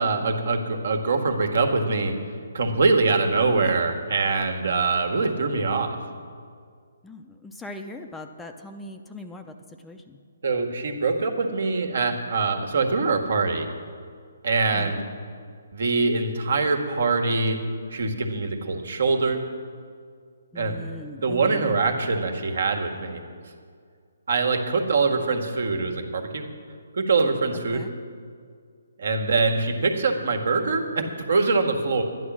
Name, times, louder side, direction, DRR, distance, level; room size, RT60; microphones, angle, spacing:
voice 1, 0.0-2.1 2.5-6.0 10.4-13.7 14.4-15.0 15.7-17.6 17.9-19.4 20.6-20.8 21.2-23.2 24.3-26.4 27.0-27.8 29.0-32.0, right 3 dB, 65° right, 4 dB, 1.7 m, -23 dB
voice 2, 7.0-9.5 9.8-10.2 14.7-15.0 20.5-21.7 27.7-27.9, left 1 dB, 5° left, 5 dB, 0.6 m, -40 dB
11.5 x 10.5 x 6.2 m, 2.1 s
hypercardioid pair, 145°, 0 cm